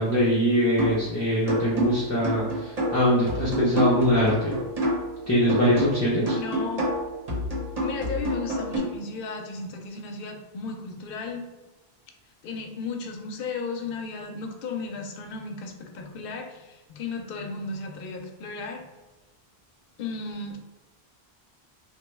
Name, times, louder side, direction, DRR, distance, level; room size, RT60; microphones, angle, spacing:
voice 1, 0.0-4.6 5.3-6.4, equal, 20° left, -8 dB, 0.4 m, -22 dB
sound 1, 0.8-1.1 1.5-5.2 5.5-8.8, equal, 40° right, 0.9 m, -28 dB
voice 2, 6.4-7.0 7.8-11.5 12.4-18.9 20.0-20.7, left 4 dB, 65° left, 3 dB, 0.7 m, -35 dB
3.2 x 2.2 x 3.0 m, 1.2 s
omnidirectional pair, 1.1 m